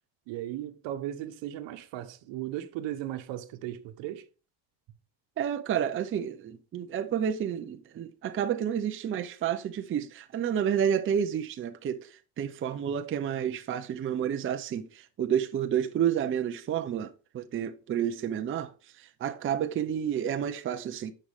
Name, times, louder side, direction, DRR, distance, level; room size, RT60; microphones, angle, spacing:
voice 1, 0.3-4.3, right 12 dB, 70° right, 1.2 m, -36 dB
voice 2, 5.4-21.1, right 9 dB, 25° right, 0.6 m, -30 dB
10.5 x 6.3 x 3.6 m
cardioid pair, 145°, 47 cm